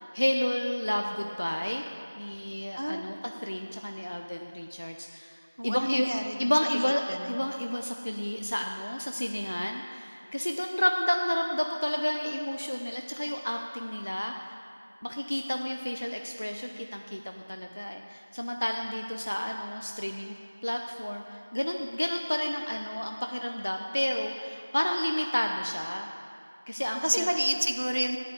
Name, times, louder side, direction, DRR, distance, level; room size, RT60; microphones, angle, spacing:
voice 1, 0.0-1.8 2.1-5.4 5.6-6.1 6.4-7.0 7.3-14.5 15.0-20.4 20.6-26.1 26.7-27.3, equal, 55° left, 3 dB, 0.5 m, -31 dB
voice 2, 2.8-3.1 5.6-6.5 6.8-7.3 27.0-28.2, equal, 70° right, 6 dB, 0.6 m, -29 dB
8.3 x 8.2 x 6.7 m, 2.5 s
figure-of-eight pair, 175°, 0 cm